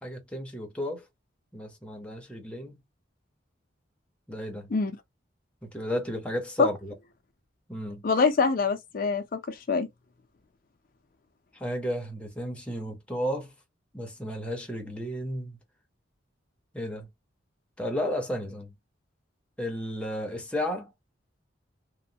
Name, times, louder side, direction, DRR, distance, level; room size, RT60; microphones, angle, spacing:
voice 1, 0.0-1.0 1.5-2.8 4.3-4.7 5.6-6.9 7.7-8.0 11.5-13.5 13.9-15.6 16.7-17.1 17.8-18.7 19.6-20.9, equal, 5° left, 0.6 m, -33 dB
voice 2, 8.0-9.9, left 4 dB, 45° left, 0.4 m, -24 dB
3.0 x 2.1 x 2.6 m
head